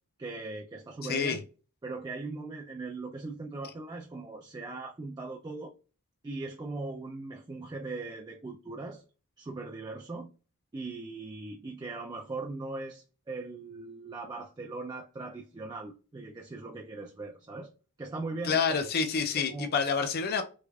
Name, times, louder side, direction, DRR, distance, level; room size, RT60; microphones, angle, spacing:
voice 1, 0.2-1.4 1.8-5.7 6.2-9.0 9.4-10.3 10.7-17.7 18.0-18.9 19.4-19.7, right 3 dB, 20° right, 0.3 m, -39 dB
voice 2, 18.4-20.4, left 5 dB, 45° left, 0.4 m, -28 dB
3.5 x 3.2 x 2.3 m
head